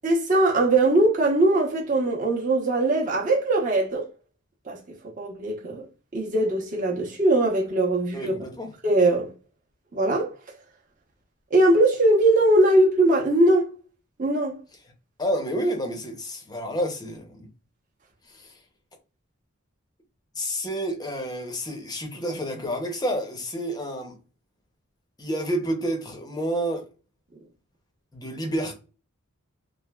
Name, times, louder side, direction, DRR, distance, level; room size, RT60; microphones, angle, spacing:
voice 1, 0.0-4.1 4.7-4.8 5.2-5.9 6.1-8.3 8.8-9.3 9.9-10.3 11.5-13.7 14.2-14.5, right 2 dB, 35° right, 0.8 m, -20 dB
voice 2, 8.1-8.7 15.2-17.5 18.3-18.5 20.4-24.2 25.2-26.9 28.1-28.7, equal, 20° left, 0.6 m, -29 dB
3.2 x 2.4 x 2.2 m
head